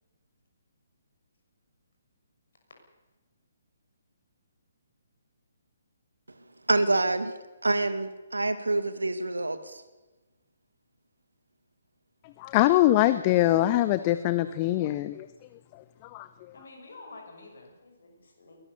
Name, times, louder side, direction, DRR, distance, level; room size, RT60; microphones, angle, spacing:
voice 1, 6.7-7.3 7.6-9.8, right 2 dB, 70° right, 11 dB, 2.1 m, -26 dB
voice 2, 12.4-15.3 16.1-16.3, left 15 dB, 25° left, 13 dB, 0.8 m, -23 dB
voice 3, 16.5-18.6, left 3 dB, 55° left, 3 dB, 6.4 m, -49 dB
22.5 x 18.5 x 6.8 m, 1.1 s
figure-of-eight pair, 135°, 0 cm